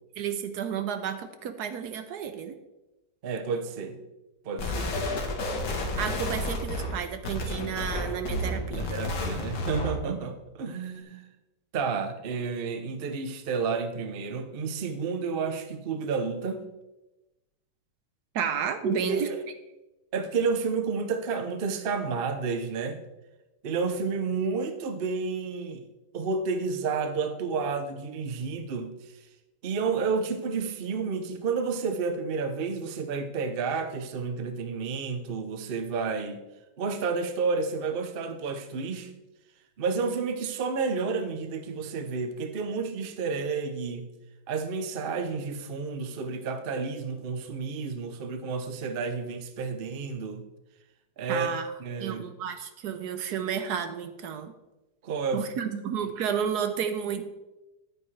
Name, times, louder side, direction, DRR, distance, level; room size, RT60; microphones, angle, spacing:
voice 1, 0.2-2.5 6.0-8.9 18.3-19.3 51.3-51.7 52.0-54.5 55.3-57.3, right 8 dB, 70° right, 9 dB, 1.2 m, -31 dB
voice 2, 3.2-4.0 4.4-4.9 8.8-11.2 11.7-16.6 18.8-19.4 20.1-23.0 23.6-25.8 26.1-29.0 29.6-36.4 36.8-39.1 39.8-44.1 44.5-50.4 51.2-51.5 51.8-52.2 55.0-55.5, right 4 dB, 45° right, 7 dB, 0.7 m, -30 dB
sound 1, 4.6-10.1, left 1 dB, 85° left, 2.0 m, -31 dB
10.0 x 9.2 x 3.2 m, 1.0 s
omnidirectional pair, 1.8 m